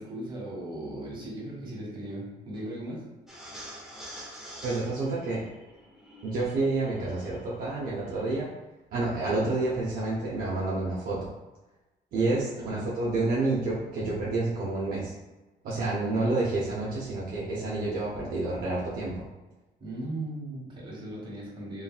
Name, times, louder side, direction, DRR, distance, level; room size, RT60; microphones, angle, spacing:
voice 1, 0.0-3.1 12.6-12.9 19.8-21.8, right 1 dB, 30° right, -5 dB, 1.4 m, -37 dB
sound 1, 3.3-8.3, equal, 5° right, 0.7 m, -47 dB
voice 2, 4.6-5.4 6.2-8.5 8.9-11.3 12.1-15.1 15.6-19.2, right 2 dB, 60° right, -6 dB, 0.7 m, -29 dB
3.1 x 2.6 x 2.3 m, 1.1 s
cardioid pair, 110°, 17 cm